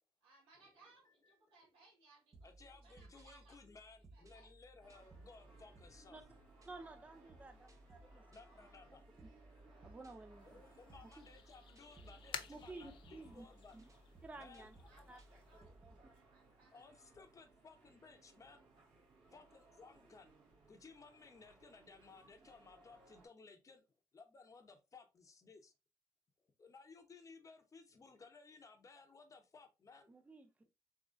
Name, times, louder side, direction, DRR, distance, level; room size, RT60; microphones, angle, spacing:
voice 1, 0.2-3.7 4.1-4.6 14.8-16.9 17.7-17.9, right 3 dB, 85° right, 2.0 m, -67 dB
sound 1, 2.3-16.0, right 1 dB, 35° right, 0.8 m, -62 dB
voice 2, 2.4-6.2 8.0-9.3 10.4-13.8 14.4-14.9 16.7-23.8 24.1-25.7 26.6-30.3, left 4 dB, 35° left, 0.8 m, -60 dB
sound 2, 4.8-23.3, right 3 dB, 65° right, 1.8 m, -66 dB
voice 3, 6.7-8.2 9.8-10.6 12.5-13.5 13.7-13.8 14.2-14.7 15.1-15.2 15.6-15.7 30.1-30.5, right 2 dB, 15° right, 0.4 m, -53 dB
sound 3, 10.4-15.6, left 9 dB, 65° left, 0.4 m, -53 dB
3.8 x 2.9 x 2.5 m
cardioid pair, 80°, 9 cm